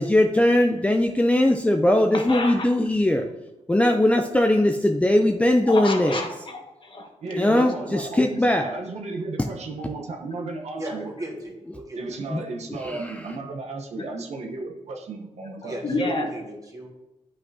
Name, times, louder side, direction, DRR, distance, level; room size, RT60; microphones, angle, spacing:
voice 1, 0.0-3.3 3.7-6.2 7.3-8.7 12.3-12.4 12.8-13.2, left 1 dB, 10° left, 3 dB, 0.5 m, -20 dB
voice 2, 2.1-2.7 5.7-7.1 15.8-16.3, left 2 dB, 45° left, 3 dB, 1.3 m, -29 dB
voice 3, 7.2-11.1 11.9-15.8, right 3 dB, 70° right, 2 dB, 0.9 m, -34 dB
voice 4, 10.8-12.0 15.6-16.9, right 1 dB, 30° right, 0 dB, 1.7 m, -36 dB
9.1 x 5.5 x 2.7 m, 0.98 s
cardioid pair, 75°, 12 cm